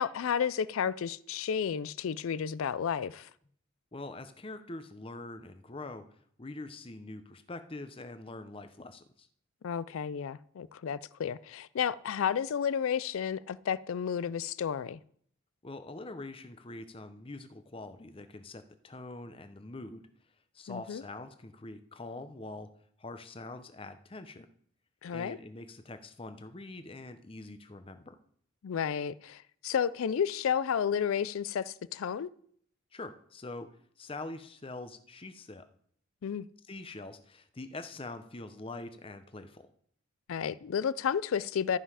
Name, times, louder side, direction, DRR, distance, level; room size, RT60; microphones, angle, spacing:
voice 1, 0.0-3.3 9.6-15.0 20.7-21.0 25.0-25.4 28.6-32.3 36.2-36.5 40.3-41.8, left 7 dB, 75° left, 0.4 m, -32 dB
voice 2, 3.9-9.3 15.6-20.1 20.5-22.7 23.0-24.5 25.1-28.2 32.9-33.7 34.0-35.7 36.7-39.7, left 2 dB, 25° left, 0.6 m, -44 dB
13.5 x 5.6 x 4.9 m
head